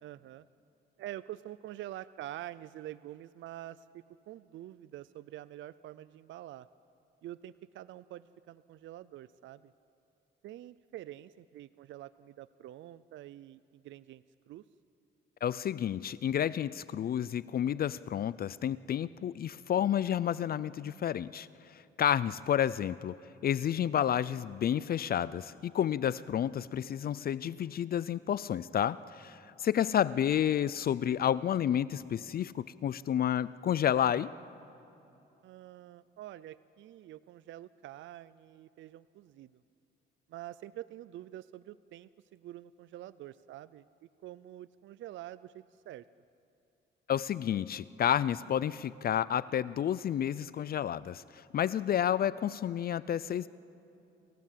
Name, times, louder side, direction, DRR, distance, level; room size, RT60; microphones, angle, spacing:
voice 1, 0.0-0.5 1.0-6.7 7.2-9.7 10.4-14.6 29.8-29.9 35.4-39.6 40.3-46.1, right 13 dB, 70° right, 16 dB, 0.5 m, -46 dB
voice 2, 15.4-23.2 23.4-34.3 47.1-53.5, left 10 dB, 50° left, 18 dB, 0.5 m, -30 dB
28.5 x 16.0 x 7.5 m, 2.9 s
cardioid pair, 90°, 20 cm